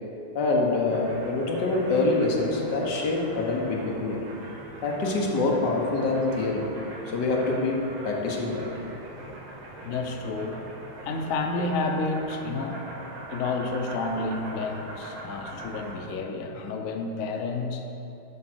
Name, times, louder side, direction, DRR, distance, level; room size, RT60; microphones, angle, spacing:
voice 1, 0.3-4.3 4.8-6.7 7.1-8.7, left 3 dB, 60° left, -1 dB, 1.6 m, -25 dB
sound 1, 0.9-16.0, right 1 dB, 80° right, 2.0 m, -42 dB
voice 2, 9.8-10.6 11.0-12.8 13.3-17.9, left 3 dB, 80° left, 3 dB, 0.7 m, -30 dB
11.0 x 3.8 x 6.1 m, 3.0 s
omnidirectional pair, 2.3 m